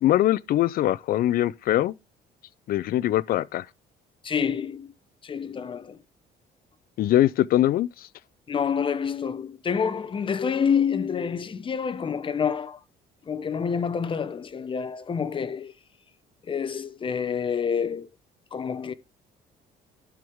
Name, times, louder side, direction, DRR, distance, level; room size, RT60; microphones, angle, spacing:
voice 1, 0.0-1.9 2.7-3.6 7.0-7.9, left 13 dB, 60° left, 0.5 m, -22 dB
voice 2, 4.2-4.9 5.2-6.0 8.5-12.8 13.3-15.7 16.5-18.1 18.5-18.9, left 7 dB, 30° left, 0.8 m, -27 dB
12.0 x 4.7 x 3.6 m
cardioid pair, 110°, 17 cm